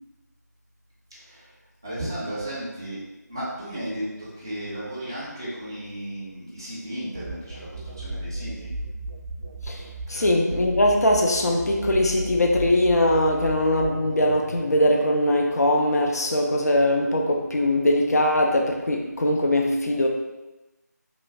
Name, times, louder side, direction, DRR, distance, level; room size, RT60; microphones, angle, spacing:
voice 1, 1.1-1.4 1.8-3.0 3.3-8.7 10.1-10.2, right 1 dB, 10° right, -9 dB, 0.4 m, -34 dB
sound 1, 7.1-14.8, right 2 dB, 85° right, 0.3 m, -35 dB
voice 2, 10.1-20.1, left 1 dB, 60° left, 1 dB, 0.4 m, -21 dB
3.0 x 2.2 x 2.5 m, 1.0 s
figure-of-eight pair, 165°, 10 cm